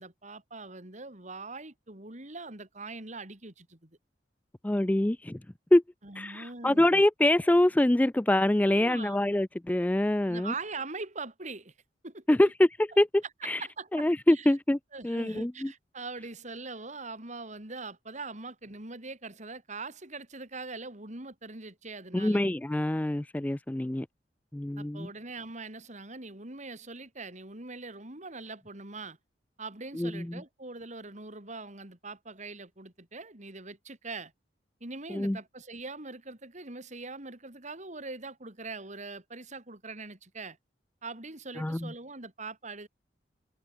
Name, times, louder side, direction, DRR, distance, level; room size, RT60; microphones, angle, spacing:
voice 1, 0.0-4.0 6.0-7.0 8.7-9.2 10.3-11.7 12.0-12.4 13.6-14.5 14.9-22.4 24.8-29.2 29.6-34.3 34.8-40.6 41.0-42.9, right 3 dB, 45° right, 3.9 m, -42 dB
voice 2, 4.6-5.4 5.7-5.8 6.2-10.5 12.3-13.6 13.9-14.8 15.0-15.7 22.1-24.1 24.5-25.1 29.9-30.4 35.1-35.4 41.6-41.9, left 1 dB, 10° left, 0.4 m, -25 dB
head